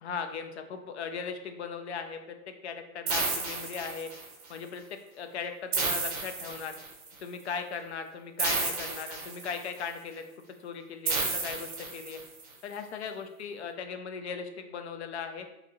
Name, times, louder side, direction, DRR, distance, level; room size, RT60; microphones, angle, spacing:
voice 1, 0.0-2.4 2.6-4.1 4.5-6.8 7.2-10.2 10.6-12.2 12.6-15.5, left 6 dB, 50° left, 7 dB, 0.5 m, -38 dB
sound 1, 3.1-4.4 5.7-7.1 8.4-9.8 11.1-12.4, right 4 dB, 25° right, 0.6 m, -32 dB
3.8 x 2.7 x 2.8 m, 0.91 s
hypercardioid pair, 155°, 45 cm